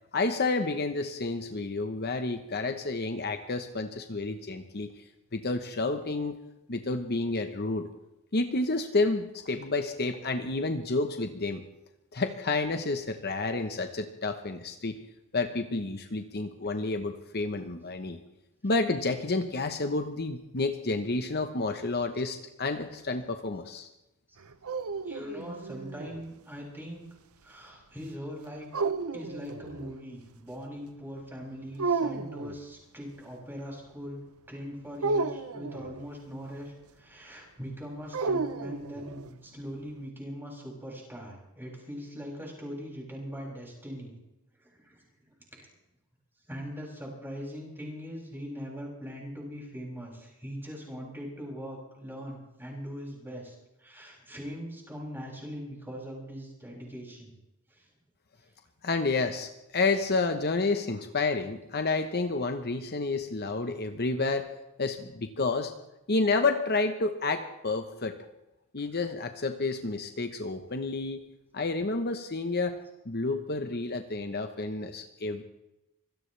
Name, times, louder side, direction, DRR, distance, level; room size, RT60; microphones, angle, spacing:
voice 1, 0.1-4.9 5.3-6.3 6.7-7.9 8.3-11.6 12.1-14.9 15.3-18.2 18.6-23.9 58.8-64.5 64.8-65.7 66.1-68.2 68.7-71.2 71.5-72.8 73.0-75.4, left 3 dB, 45° left, 7 dB, 1.0 m, -30 dB
sound 1, 24.4-26.2 28.7-30.0 31.8-32.6 35.0-36.1 38.1-39.3, right 4 dB, 75° right, 0.8 m, -32 dB
voice 2, 25.0-27.0 27.4-28.7 29.1-44.1 44.5-45.0 45.5-45.7 46.5-57.3 57.7-57.9 58.4-58.5, equal, 10° right, -3 dB, 6.8 m, -41 dB
25.5 x 17.0 x 3.3 m, 0.93 s
head